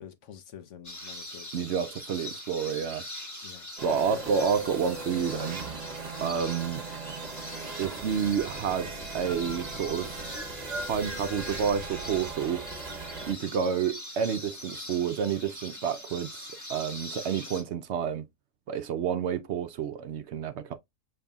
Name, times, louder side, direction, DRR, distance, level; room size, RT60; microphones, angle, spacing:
voice 1, 0.0-1.6 3.4-4.2, left 8 dB, 70° left, 1.0 m, -47 dB
sound 1, 0.8-17.6, left 1 dB, 15° left, 1.2 m, -43 dB
voice 2, 1.5-3.0 3.8-5.6 6.2-6.8 7.8-10.2 10.8-12.6 13.3-18.3 18.7-20.7, right 7 dB, 65° right, 0.8 m, -29 dB
sound 2, 3.8-13.3, right 3 dB, 35° right, 1.2 m, -39 dB
6.9 x 3.2 x 2.3 m
omnidirectional pair, 1.4 m